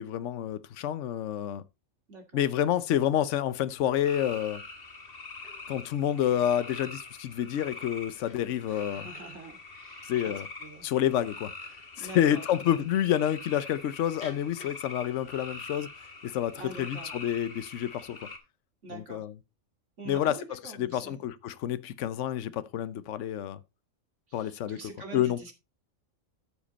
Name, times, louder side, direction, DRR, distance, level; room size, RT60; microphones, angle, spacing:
voice 1, 0.0-1.6 2.3-4.6 5.7-9.1 10.0-10.5 10.8-11.5 12.0-15.9 16.2-18.2 18.9-19.3 20.0-23.6 24.3-24.8 25.1-25.4, left 11 dB, 65° left, 1.0 m, -29 dB
voice 2, 2.1-2.4 8.7-10.3 10.6-10.9 12.0-12.4 16.6-17.1 18.8-19.3 20.0-21.2 24.3-25.5, right 3 dB, 60° right, 2.6 m, -45 dB
sound 1, 4.0-18.4, left 3 dB, 45° left, 1.9 m, -44 dB
13.5 x 5.1 x 4.1 m
omnidirectional pair, 1.4 m